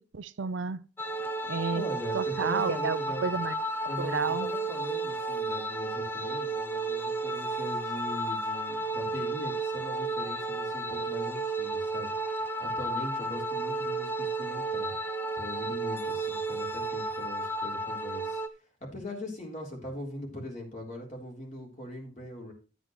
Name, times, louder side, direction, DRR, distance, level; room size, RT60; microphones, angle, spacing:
voice 1, 0.1-0.8 1.5-1.8 2.1-4.5, right 5 dB, 80° right, 0.5 m, -31 dB
sound 1, 1.0-18.5, right 2 dB, 10° left, 0.6 m, -32 dB
voice 2, 1.7-3.2 3.9-12.1 12.6-15.0 15.3-18.4 18.8-22.5, left 1 dB, 40° left, 3.6 m, -40 dB
11.0 x 9.1 x 3.1 m
head